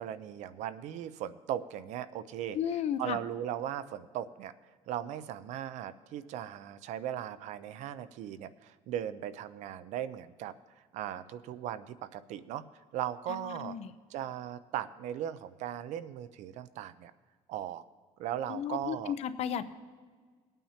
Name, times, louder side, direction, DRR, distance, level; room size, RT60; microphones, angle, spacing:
voice 1, 0.0-2.6 3.0-4.5 4.9-10.5 10.9-12.6 12.9-13.8 14.1-17.1 17.5-17.8 18.2-19.1, right 11 dB, 80° right, 14 dB, 0.6 m, -38 dB
voice 2, 2.5-3.2 13.3-13.9 18.5-19.6, left 9 dB, 65° left, 11 dB, 0.7 m, -34 dB
20.5 x 8.9 x 2.8 m, 1.6 s
cardioid pair, 130°, 12 cm